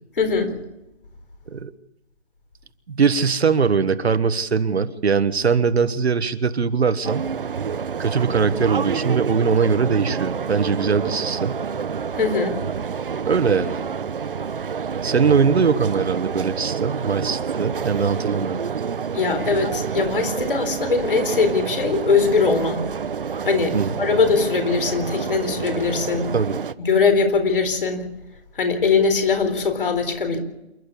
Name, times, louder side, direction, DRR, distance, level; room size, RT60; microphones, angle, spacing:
voice 1, 0.2-0.5 12.2-12.6 19.1-22.9 23.4-26.3 26.8-28.1 28.5-30.4, left 4 dB, 50° left, 8 dB, 4.0 m, -21 dB
voice 2, 2.9-7.3 8.0-11.6 13.3-13.8 15.0-18.6 23.7-23.9 26.3-26.6, right 5 dB, 65° right, 12 dB, 1.5 m, -21 dB
sound 1, 7.0-26.7, right 6 dB, 50° right, 0.8 m, -28 dB
27.5 x 11.0 x 8.4 m, 0.94 s
hypercardioid pair, 170°, 34 cm